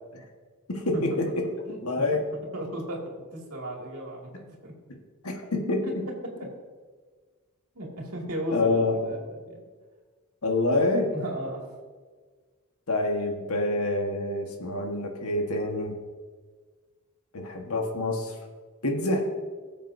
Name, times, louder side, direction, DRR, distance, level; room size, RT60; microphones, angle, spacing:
voice 1, 0.7-1.1 1.4-1.5 1.8-2.2 5.2-6.0 8.5-9.1 10.4-11.1 12.9-16.0 17.3-18.3 18.8-19.3, left 2 dB, 80° left, 2 dB, 1.5 m, -26 dB
voice 2, 1.6-2.1 2.5-4.7 5.8-5.9 6.2-6.3 7.7-9.6 11.1-11.7, right 1 dB, 80° right, -1 dB, 2.4 m, -35 dB
20.0 x 7.4 x 2.7 m, 1.5 s
head